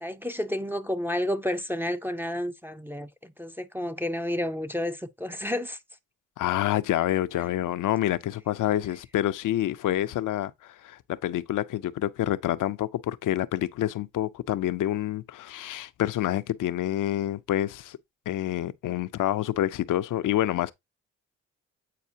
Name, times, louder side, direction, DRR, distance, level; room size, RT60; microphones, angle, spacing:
voice 1, 0.0-5.8, left 1 dB, 5° right, 0.5 m, -31 dB
voice 2, 6.4-18.0 18.3-20.7, left 13 dB, 70° left, 0.6 m, -27 dB
8.5 x 4.2 x 2.7 m
supercardioid pair, 55°, 33 cm